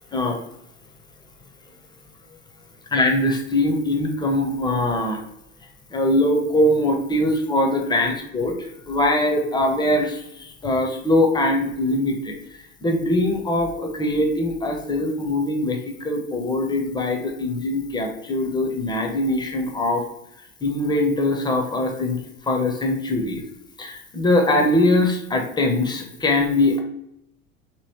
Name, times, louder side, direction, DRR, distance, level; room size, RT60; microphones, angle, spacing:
voice 1, 2.9-5.2 5.9-12.3 12.8-20.0 20.6-22.2 22.5-23.4 23.8-26.8, left 1 dB, 10° left, 3 dB, 0.7 m, -22 dB
3.1 x 2.9 x 4.1 m, 0.82 s
figure-of-eight pair, 70°, 40 cm